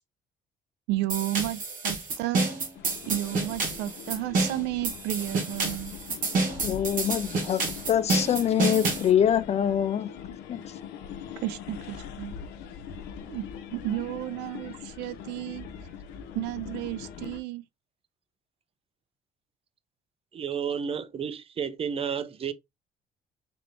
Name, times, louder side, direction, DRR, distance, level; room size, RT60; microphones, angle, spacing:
voice 1, 0.9-2.5 3.1-5.9 11.4-12.3 13.3-13.4 13.7-15.7 16.3-17.6, right 15 dB, 90° right, 0.4 m, -32 dB
sound 1, 1.1-9.1, right 3 dB, 55° right, 1.8 m, -29 dB
sound 2, 2.7-17.4, left 8 dB, 85° left, 0.8 m, -42 dB
voice 2, 6.6-10.1 10.5-10.7, left 9 dB, 40° left, 0.4 m, -25 dB
voice 3, 20.3-22.5, right 7 dB, 35° right, 0.5 m, -31 dB
4.0 x 3.4 x 2.6 m
cardioid pair, 110°, 17 cm